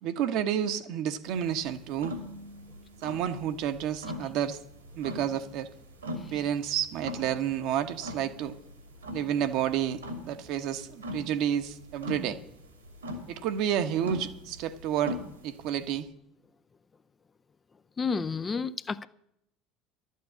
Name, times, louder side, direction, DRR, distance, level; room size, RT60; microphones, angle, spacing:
voice 1, 0.0-2.1 3.0-4.6 5.0-5.7 6.3-8.6 9.1-12.4 13.3-16.1, right 9 dB, 55° right, 1.0 m, -30 dB
sound 1, 1.2-16.0, left 1 dB, 85° right, 2.2 m, -42 dB
voice 2, 18.0-19.1, left 5 dB, 25° left, 0.5 m, -30 dB
12.0 x 8.5 x 8.4 m
figure-of-eight pair, 65°, 0 cm